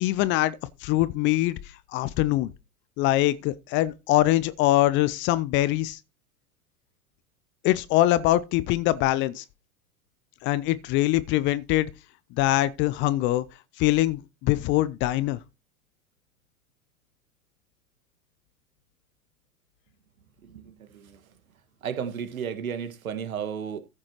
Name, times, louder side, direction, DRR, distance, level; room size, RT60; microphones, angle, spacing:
voice 1, 0.0-1.6 1.9-2.5 3.0-6.0 7.6-9.4 10.4-11.9 12.4-13.4 13.8-15.4, left 15 dB, 30° left, 0.5 m, -23 dB
voice 2, 20.4-21.2 21.8-23.8, right 7 dB, 70° right, 1.8 m, -33 dB
14.5 x 7.4 x 3.0 m
figure-of-eight pair, 90°, 43 cm